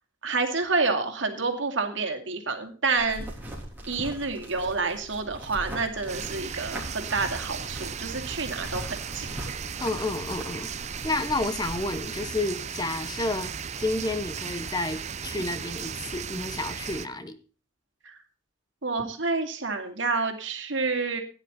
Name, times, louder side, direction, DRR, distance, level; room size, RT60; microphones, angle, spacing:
voice 1, 0.2-3.3 3.9-9.3 18.0-18.1 18.8-21.2, right 4 dB, 65° right, 5 dB, 2.3 m, -28 dB
sound 1, 3.0-12.0, right 1 dB, 10° right, 3.6 m, -41 dB
sound 2, 6.1-17.1, right 6 dB, 35° right, 0.6 m, -36 dB
voice 2, 9.8-10.7 11.0-17.4, left 2 dB, 20° left, 11 dB, 0.8 m, -30 dB
16.0 x 10.0 x 4.2 m, 0.36 s
head